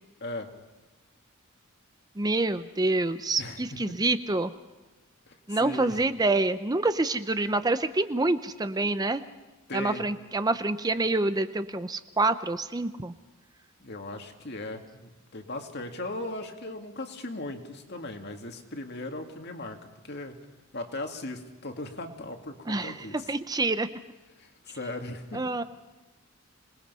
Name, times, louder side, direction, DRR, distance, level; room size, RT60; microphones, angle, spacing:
voice 1, 0.2-0.5 3.4-4.0 5.3-6.0 9.7-10.1 13.8-20.3 20.7-23.3 24.4-25.6, left 2 dB, 50° left, 5 dB, 2.2 m, -38 dB
voice 2, 2.2-4.5 5.5-9.2 9.7-13.1 22.7-23.9 25.3-25.6, right 2 dB, 20° right, 11 dB, 0.6 m, -27 dB
27.0 x 20.0 x 5.5 m, 1.2 s
head